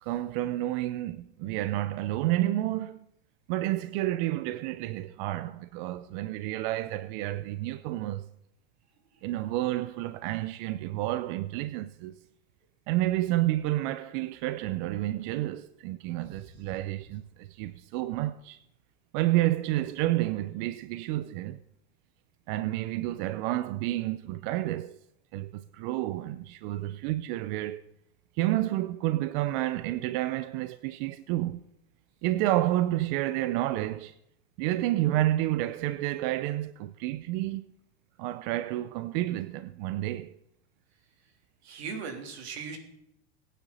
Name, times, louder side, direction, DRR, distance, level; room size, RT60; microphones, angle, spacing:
voice 1, 0.0-3.0 3.5-8.3 9.2-12.2 12.9-18.6 19.1-21.6 22.5-25.0 25.3-27.8 28.4-31.6 32.2-34.1 34.6-37.7 38.2-40.3, right 15 dB, 50° right, 0.6 m, -30 dB
voice 2, 41.6-42.8, right 5 dB, 80° right, 3.5 m, -38 dB
21.0 x 9.3 x 4.2 m
supercardioid pair, 140°, 32 cm